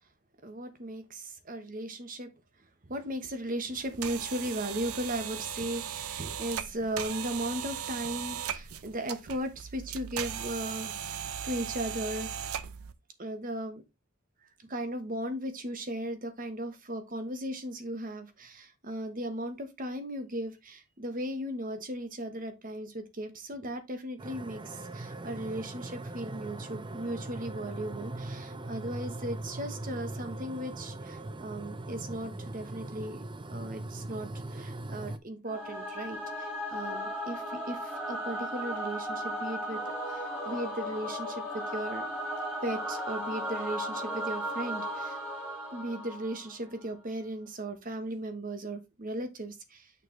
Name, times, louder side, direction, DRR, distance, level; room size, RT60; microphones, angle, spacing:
voice 1, 0.4-2.3 2.8-12.5 13.2-13.8 14.4-33.2 33.5-39.8 40.1-42.1 42.6-45.2 45.7-49.9, right 1 dB, 40° right, 1.2 m, -37 dB
sound 1, 3.7-12.9, right 9 dB, 90° right, 0.6 m, -38 dB
sound 2, 24.2-35.2, right 2 dB, 20° right, 0.5 m, -40 dB
Singing / Musical instrument, 35.5-46.8, equal, 5° right, 3.4 m, -36 dB
6.5 x 6.3 x 3.2 m
head